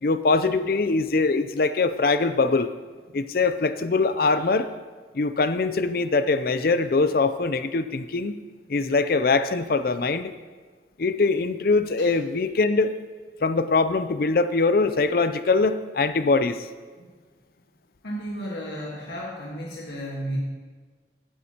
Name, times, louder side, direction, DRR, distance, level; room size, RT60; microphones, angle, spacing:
voice 1, 0.0-2.7 3.1-4.7 5.1-8.4 8.7-10.3 11.0-12.9 13.4-16.7, left 3 dB, 55° left, 11 dB, 0.5 m, -22 dB
voice 2, 18.0-20.4, equal, 75° left, -4 dB, 1.5 m, -33 dB
16.0 x 9.3 x 2.9 m, 1.4 s
head